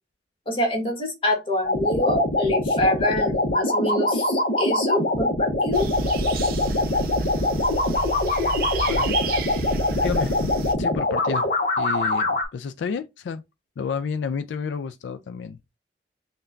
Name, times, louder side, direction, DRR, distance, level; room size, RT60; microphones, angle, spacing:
voice 1, 0.5-5.9 6.4-6.6, left 1 dB, 30° left, 1.2 m, -26 dB
sound 1, 1.6-12.4, left 2 dB, 55° left, 0.7 m, -23 dB
sound 2, 5.7-10.8, right 3 dB, 55° right, 0.5 m, -30 dB
voice 2, 10.0-10.5 10.8-11.5 11.8-13.4 13.8-15.6, left 6 dB, 90° left, 0.3 m, -30 dB
5.6 x 2.2 x 2.5 m
head